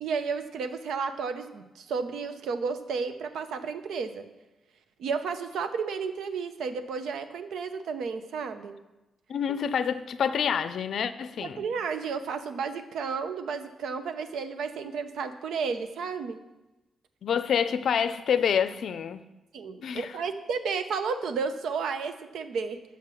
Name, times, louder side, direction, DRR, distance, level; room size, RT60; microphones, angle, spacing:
voice 1, 0.0-4.2 5.0-8.8 11.4-16.4 19.5-22.8, right 5 dB, 85° right, 9 dB, 0.7 m, -32 dB
voice 2, 9.3-11.7 17.2-19.2 19.8-20.2, left 7 dB, 65° left, 13 dB, 0.5 m, -27 dB
7.5 x 7.1 x 6.2 m, 1.0 s
cardioid pair, 125°, 0 cm